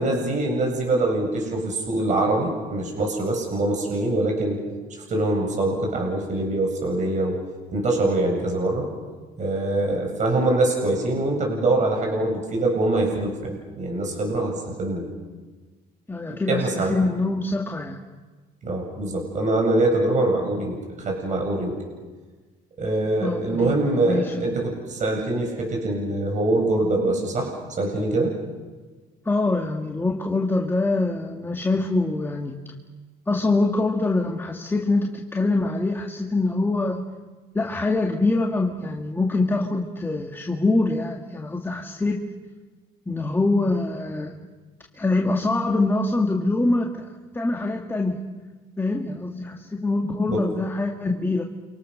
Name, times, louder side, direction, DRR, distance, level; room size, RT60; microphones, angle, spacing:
voice 1, 0.0-4.6 4.9-7.4 7.7-8.9 9.4-15.1 16.3-16.9 18.6-21.8 22.8-27.5 27.8-28.4 50.3-50.4, right 2 dB, 45° right, 1 dB, 7.8 m, -24 dB
voice 2, 16.1-18.0 23.2-24.3 29.3-32.5 33.3-37.1 37.5-42.3 43.1-44.4 44.9-48.3 48.8-51.4, left 2 dB, 15° left, 1 dB, 2.2 m, -24 dB
29.5 x 27.5 x 6.6 m, 1.4 s
cardioid pair, 110°, 17 cm